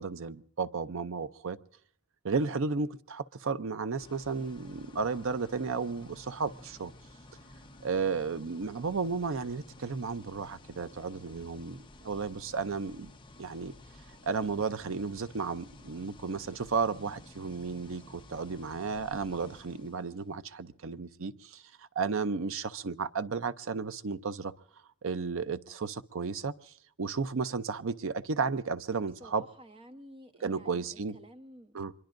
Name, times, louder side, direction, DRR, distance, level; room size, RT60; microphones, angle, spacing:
voice 1, 0.0-1.6 2.2-6.9 7.8-13.1 13.4-13.7 14.2-24.5 25.0-29.4 30.4-31.2 31.7-31.9, right 5 dB, 65° right, 0.6 m, -33 dB
sound 1, 4.0-20.3, left 1 dB, 20° left, 1.0 m, -53 dB
voice 2, 29.2-31.8, right 1 dB, 25° right, 1.0 m, -52 dB
25.0 x 22.5 x 2.6 m
head